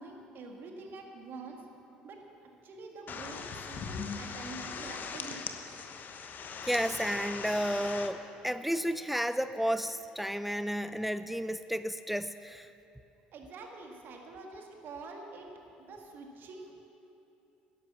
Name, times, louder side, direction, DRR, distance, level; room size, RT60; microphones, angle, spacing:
voice 1, 0.0-1.6 2.0-2.2 2.6-5.4 13.3-15.5 15.8-16.9, right 3 dB, 55° right, 2 dB, 2.1 m, -46 dB
sound 1, 3.1-8.1, left 6 dB, 45° left, 1.1 m, -40 dB
voice 2, 6.6-12.7, equal, 5° right, 12 dB, 0.4 m, -32 dB
11.5 x 11.0 x 7.1 m, 2.8 s
hypercardioid pair, 60°, 4 cm